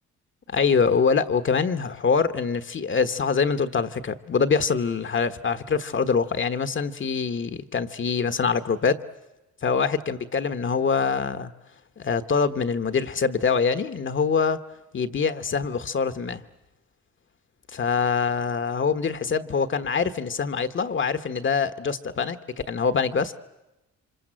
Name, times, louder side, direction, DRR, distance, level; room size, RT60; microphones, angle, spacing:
voice 1, 0.5-9.0 9.6-11.5 12.0-14.6 14.9-16.4 17.7-22.4 22.7-23.3, left 5 dB, 40° left, 10 dB, 1.4 m, -24 dB
28.5 x 25.5 x 7.7 m, 0.98 s
cardioid pair, 90°, 30 cm